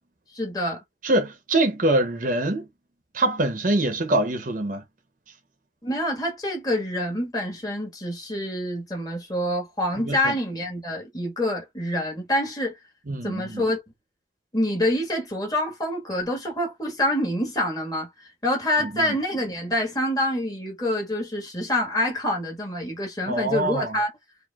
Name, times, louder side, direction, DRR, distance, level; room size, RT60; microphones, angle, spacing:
voice 1, 0.3-0.8 5.8-12.8 13.2-13.8 14.5-18.1 18.4-24.1, left 1 dB, 20° left, 1.5 m, -26 dB
voice 2, 1.0-2.7 3.1-4.8 10.0-10.4 13.1-13.6 18.8-19.2 23.3-24.0, right 1 dB, 45° right, 0.8 m, -24 dB
4.8 x 2.6 x 2.4 m
head